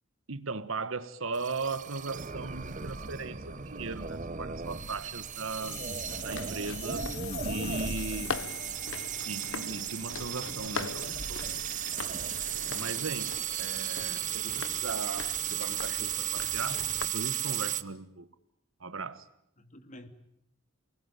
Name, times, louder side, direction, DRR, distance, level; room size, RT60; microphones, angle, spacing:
voice 1, 0.3-5.9 6.2-7.1 7.4-8.5 9.2-11.5 12.6-18.3 18.8-19.3, right 4 dB, 85° right, 1.5 m, -38 dB
sound 1, 1.3-17.8, right 8 dB, 40° right, 1.2 m, -35 dB
sound 2, 5.4-9.1, left 12 dB, 55° left, 1.8 m, -45 dB
sound 3, 6.1-17.0, left 4 dB, 75° left, 1.3 m, -42 dB
voice 2, 12.7-13.5 14.7-14.9 19.6-20.1, left 1 dB, 40° left, 2.7 m, -53 dB
29.0 x 20.5 x 9.1 m
head